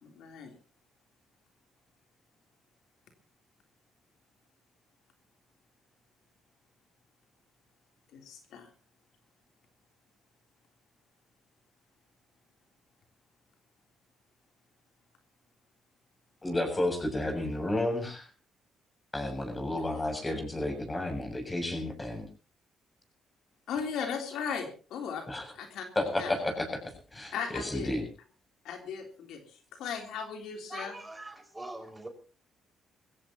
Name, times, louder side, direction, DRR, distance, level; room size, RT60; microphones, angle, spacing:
voice 1, 0.0-0.5 8.1-8.7 19.9-20.0 23.7-25.2 25.5-25.9 26.2-26.3 27.3-27.9 28.6-31.0, left 6 dB, 80° left, 4 dB, 3.2 m, -37 dB
voice 2, 16.4-18.3 19.1-22.3 25.3-25.5 26.0-28.0, left 1 dB, 20° left, 5 dB, 7.2 m, -32 dB
voice 3, 30.7-32.1, right 2 dB, 15° right, 4 dB, 5.2 m, -42 dB
22.5 x 16.5 x 2.9 m, 0.34 s
cardioid pair, 90°, 0 cm